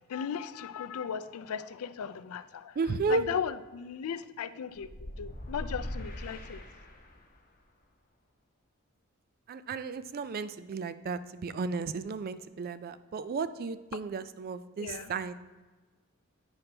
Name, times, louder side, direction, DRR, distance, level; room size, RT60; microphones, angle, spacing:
voice 1, 0.1-2.8 3.1-4.9 5.2-6.6 14.8-15.1, left 7 dB, 75° left, 14 dB, 0.4 m, -36 dB
voice 2, 2.8-3.2 9.5-15.3, right 4 dB, 45° right, 13 dB, 0.3 m, -33 dB
sound 1, 4.7-7.4, equal, 40° left, 1.1 m, -41 dB
8.8 x 5.8 x 3.3 m, 1.3 s
head